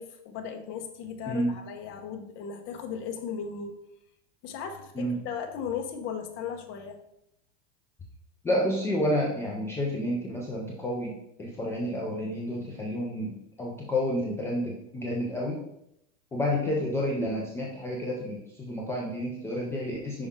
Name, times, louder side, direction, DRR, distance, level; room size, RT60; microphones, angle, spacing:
voice 1, 0.0-3.8 4.4-7.0, left 7 dB, 35° left, 4 dB, 0.9 m, -36 dB
voice 2, 8.4-15.6 16.3-20.3, left 1 dB, 10° left, -3 dB, 0.3 m, -30 dB
5.5 x 4.8 x 3.6 m, 0.79 s
supercardioid pair, 150°, 36 cm